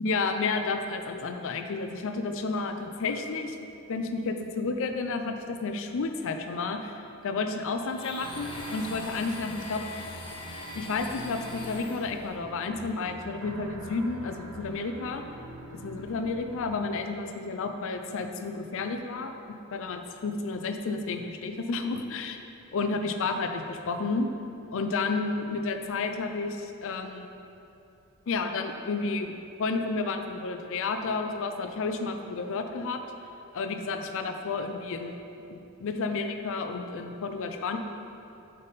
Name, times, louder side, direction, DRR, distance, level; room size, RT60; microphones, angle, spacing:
voice 1, 0.0-3.6 3.9-9.8 10.7-15.2 15.7-19.3 19.7-22.4 22.7-24.3 24.7-27.4 28.3-33.0 33.5-35.2 35.5-37.8, left 4 dB, 65° left, 6 dB, 0.5 m, -31 dB
Domestic sounds home sounds, 7.9-12.4, left 2 dB, 25° left, 0.6 m, -42 dB
sound 1, 8.2-16.8, right 2 dB, 90° right, 0.6 m, -44 dB
5.3 x 5.3 x 4.1 m, 2.7 s
head